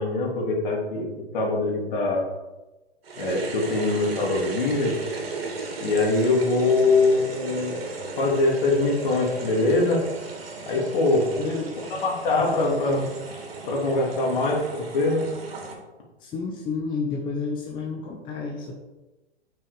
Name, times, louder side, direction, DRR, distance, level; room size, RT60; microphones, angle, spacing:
voice 1, 0.0-2.2 3.2-5.0 5.8-7.7 8.2-10.0 10.7-11.3 11.9-13.0 13.7-15.2, left 2 dB, 50° left, -1 dB, 2.9 m, -23 dB
sound 1, 3.0-15.7, right 3 dB, 60° right, 2.7 m, -36 dB
voice 2, 11.4-11.7 12.4-13.1 16.2-18.7, left 4 dB, 15° left, 1 dB, 0.8 m, -30 dB
8.6 x 6.3 x 5.0 m, 1.1 s
figure-of-eight pair, 120°, 33 cm